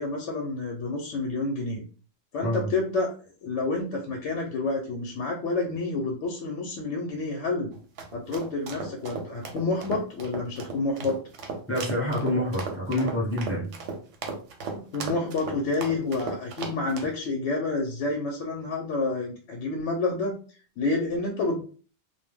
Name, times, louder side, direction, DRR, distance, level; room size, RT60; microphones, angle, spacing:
voice 1, 0.0-1.8 2.3-3.1 3.4-7.7 8.1-11.2 14.7-20.4 20.8-21.6, left 3 dB, 80° left, 0 dB, 0.9 m, -29 dB
sound 1, 7.7-17.1, right 4 dB, 85° right, 0.9 m, -36 dB
voice 2, 11.7-13.7, left 1 dB, 15° left, -4 dB, 0.8 m, -27 dB
2.2 x 2.0 x 3.4 m, 0.39 s
omnidirectional pair, 1.2 m